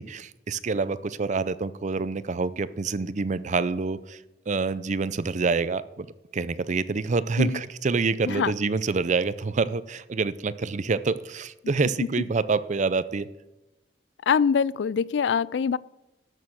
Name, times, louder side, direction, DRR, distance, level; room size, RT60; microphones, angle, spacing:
voice 1, 0.0-4.2 4.5-6.1 6.3-13.3, right 4 dB, 45° right, 17 dB, 0.5 m, -27 dB
voice 2, 14.3-15.8, left 6 dB, 70° left, 21 dB, 0.3 m, -23 dB
13.0 x 6.7 x 6.4 m, 0.99 s
head